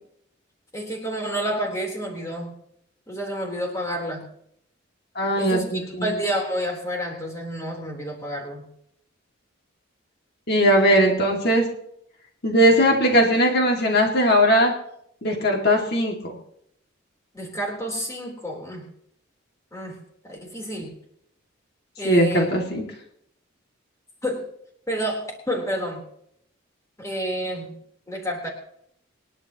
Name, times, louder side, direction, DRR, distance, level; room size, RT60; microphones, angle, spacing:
voice 1, 0.7-2.5 3.1-4.3 5.4-8.6 17.3-18.9 19.7-21.0 22.0-22.5 24.2-24.5 24.9-26.0 27.0-27.8 28.1-28.5, equal, 15° left, 0 dB, 3.7 m, -29 dB
voice 2, 5.2-6.2 10.5-11.7 12.4-14.7 15.2-16.3 22.0-22.8, equal, 55° left, 1 dB, 2.3 m, -19 dB
26.5 x 11.0 x 3.0 m, 0.71 s
head